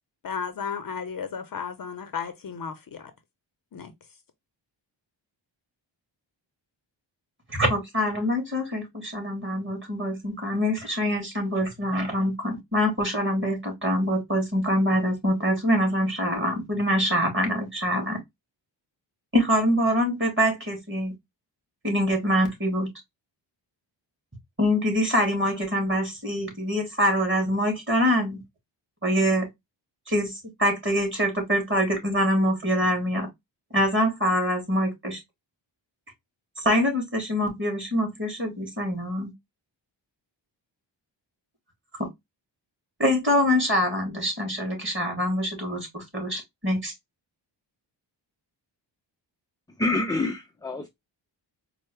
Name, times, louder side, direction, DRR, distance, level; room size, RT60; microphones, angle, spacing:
voice 1, 0.2-3.1 3.7-3.9, left 6 dB, 50° left, 0.6 m, -34 dB
voice 2, 7.5-18.2 19.3-21.1 21.8-22.9 24.6-28.4 29.0-29.5 30.1-30.3 30.6-33.3 33.7-35.2 36.6-39.3 42.0-42.1 43.0-46.9, equal, 25° right, 2.0 m, -24 dB
voice 3, 49.8-50.9, left 2 dB, 10° left, 0.4 m, -26 dB
4.4 x 2.1 x 3.1 m
cardioid pair, 90°, 45 cm